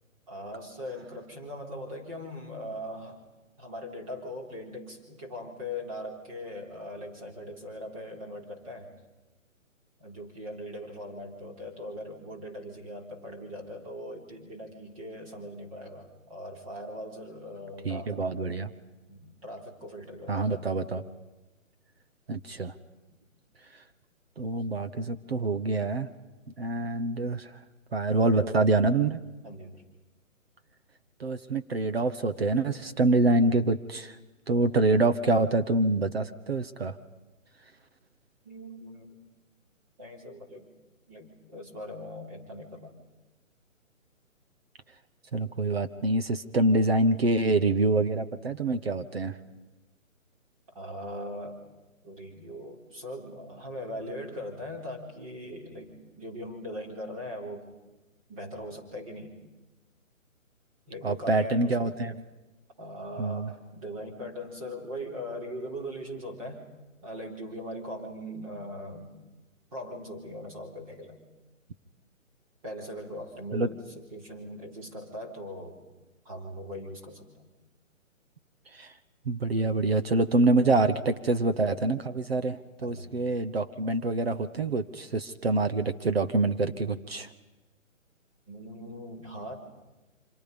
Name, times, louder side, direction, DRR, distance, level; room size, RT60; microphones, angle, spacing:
voice 1, 0.3-3.2 3.6-8.9 10.0-18.2 19.1-20.7 29.4-29.8 38.4-39.2 40.0-40.7 41.1-42.9 50.7-51.6 52.0-57.8 58.3-59.4 60.9-62.0 62.8-66.6 67.0-69.1 69.7-71.2 72.6-73.8 74.1-75.8 76.3-77.5 82.8-83.1 88.5-89.6, equal, 25° right, 1 dB, 3.6 m, -40 dB
voice 2, 17.8-18.7 20.3-21.0 22.3-22.7 24.4-26.1 26.6-27.5 27.9-29.2 31.2-34.1 34.5-37.0 45.3-49.3 61.0-62.2 63.2-63.5 73.5-73.7 78.7-78.9 79.3-87.3, right 2 dB, 45° right, 10 dB, 1.1 m, -26 dB
29.0 x 26.0 x 5.3 m, 1.1 s
hypercardioid pair, 170°, 41 cm